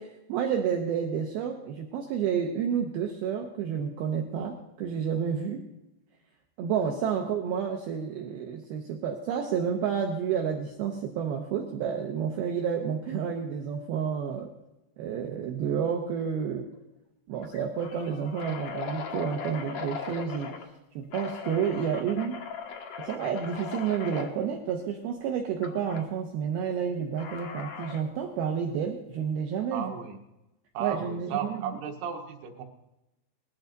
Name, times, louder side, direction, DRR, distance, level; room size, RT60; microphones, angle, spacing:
voice 1, 0.0-5.7 6.6-14.5 15.0-16.7 17.3-20.6 21.0-22.4 23.0-29.9 30.8-31.8, right 7 dB, 75° right, 3 dB, 2.5 m, -30 dB
sound 1, 16.2-16.4 16.7-16.8 17.4-20.7 21.1-24.3 25.6-26.0 27.2-28.1, left 5 dB, 60° left, 1.8 m, -39 dB
voice 2, 29.7-30.2 30.8-32.6, right 8 dB, 90° right, 2 dB, 4.0 m, -34 dB
20.0 x 14.0 x 4.0 m, 0.97 s
omnidirectional pair, 5.2 m